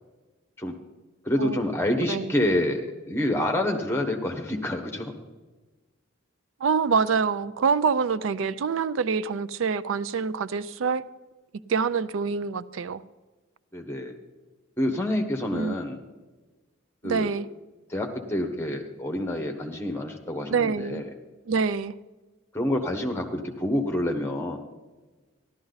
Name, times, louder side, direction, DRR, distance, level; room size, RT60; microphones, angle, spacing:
voice 1, 1.2-5.1 13.7-14.1 14.8-16.0 17.0-17.3 17.9-21.1 22.5-24.6, left 1 dB, 10° left, 4 dB, 1.2 m, -27 dB
voice 2, 6.6-11.0 11.7-13.0 15.5-15.7 17.0-17.5 20.5-21.0 21.5-21.9, right 5 dB, 80° right, 17 dB, 0.4 m, -26 dB
13.5 x 12.0 x 4.0 m, 1.2 s
head